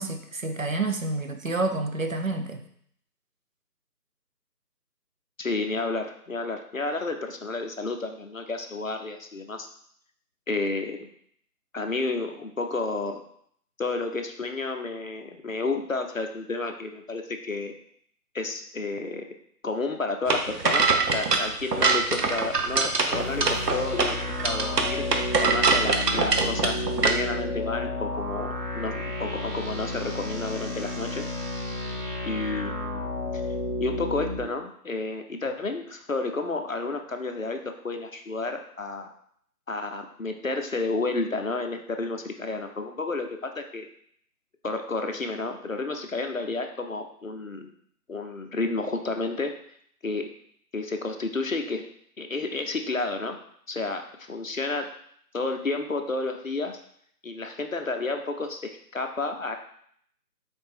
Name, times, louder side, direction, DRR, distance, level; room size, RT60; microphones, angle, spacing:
voice 1, 0.0-2.6, right 2 dB, 60° right, 6 dB, 0.5 m, -29 dB
voice 2, 5.4-9.7 10.5-11.1 11.7-13.2 13.8-17.8 18.3-19.3 19.6-24.2 24.4-25.0 25.4-31.2 32.2-33.1 33.8-39.1 39.7-43.9 44.6-47.7 48.1-49.5 50.0-50.3 50.7-51.8 52.2-53.4 53.7-54.9 55.3-56.8 57.2-59.6, left 3 dB, 55° left, 5 dB, 0.5 m, -31 dB
sound 1, 20.3-27.1, right 4 dB, 75° right, 0.8 m, -24 dB
sound 2, 23.1-34.4, left 2 dB, 30° right, 1.1 m, -32 dB
4.0 x 3.3 x 3.5 m, 0.65 s
figure-of-eight pair, 175°, 48 cm